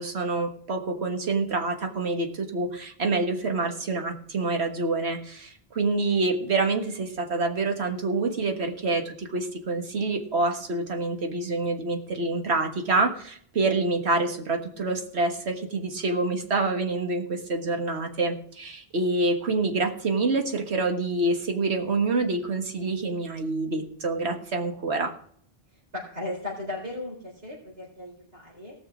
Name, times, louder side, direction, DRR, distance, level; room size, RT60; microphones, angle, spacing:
voice 1, 0.0-25.1, right 3 dB, 90° right, 4 dB, 1.8 m, -27 dB
voice 2, 25.7-28.7, left 2 dB, 65° right, -6 dB, 4.5 m, -36 dB
18.5 x 6.4 x 4.9 m, 0.62 s
omnidirectional pair, 1.1 m